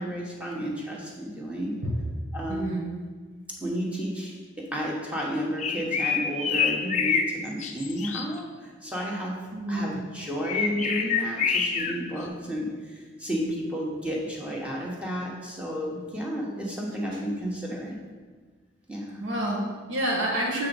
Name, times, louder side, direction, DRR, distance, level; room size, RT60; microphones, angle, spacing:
voice 1, 0.0-1.7 2.3-2.9 3.6-4.3 4.7-9.4 9.7-17.9 18.9-19.2, equal, 5° right, -3 dB, 1.1 m, -32 dB
voice 2, 2.5-2.9 9.5-10.0 17.1-17.2 19.2-20.7, right 1 dB, 80° right, -3 dB, 1.3 m, -28 dB
sound 1, 5.6-7.3 7.6-8.2 10.4-11.9, left 6 dB, 35° left, 0.5 m, -26 dB
7.4 x 3.9 x 5.2 m, 1.4 s
head